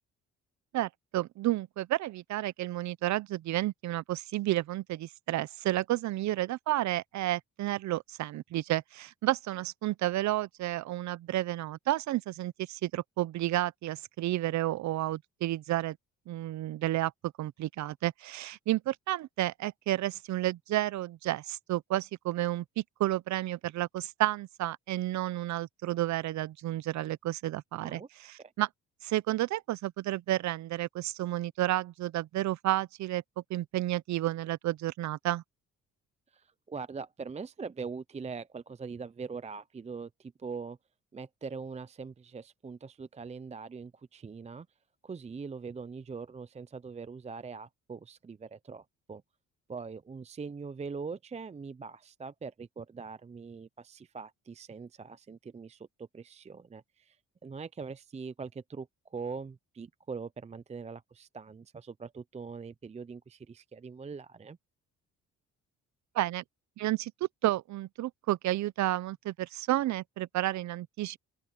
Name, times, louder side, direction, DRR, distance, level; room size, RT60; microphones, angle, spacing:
voice 1, 0.7-16.0 16.3-17.1 17.4-28.7 29.0-33.2 33.5-35.4 66.1-66.4 66.8-67.1 67.4-71.2, right 15 dB, 70° right, 0.6 m, -31 dB
voice 2, 36.3-40.8 41.1-44.7 45.0-49.2 49.7-57.2 57.4-64.6, right 5 dB, 20° right, 0.5 m, -42 dB
open air
cardioid pair, 90°, 30 cm